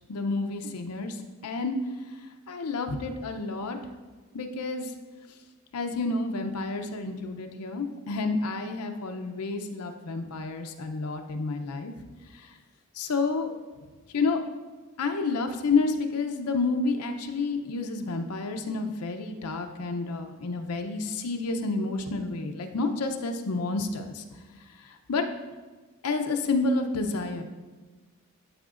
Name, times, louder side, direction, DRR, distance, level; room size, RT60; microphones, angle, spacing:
voice 1, 0.1-1.8 2.5-3.8 4.3-4.9 5.7-11.9 12.3-12.5 12.9-13.5 14.1-14.4 15.0-24.2 25.1-25.2 26.0-27.4, left 3 dB, 90° left, 5 dB, 0.6 m, -29 dB
11.5 x 4.9 x 2.5 m, 1.3 s
head